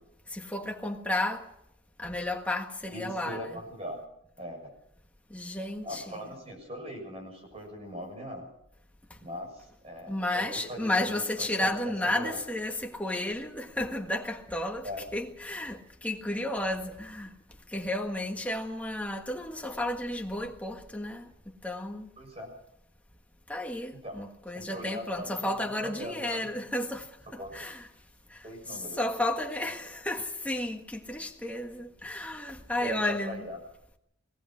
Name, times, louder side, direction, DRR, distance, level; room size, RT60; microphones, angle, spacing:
voice 1, 0.3-1.5 2.0-3.6 5.3-6.1 10.1-17.3 17.7-21.3 21.6-22.1 23.5-27.9 28.3-28.4 28.7-33.4, left 1 dB, 5° left, 1.6 m, -32 dB
voice 2, 2.9-4.0 4.4-4.7 5.8-8.4 9.2-12.4 14.8-15.0 22.2-22.5 24.0-24.2 24.5-26.5 27.4-27.5 28.4-29.0 32.8-33.6, equal, 30° right, 7.0 m, -40 dB
22.0 x 18.5 x 6.3 m
head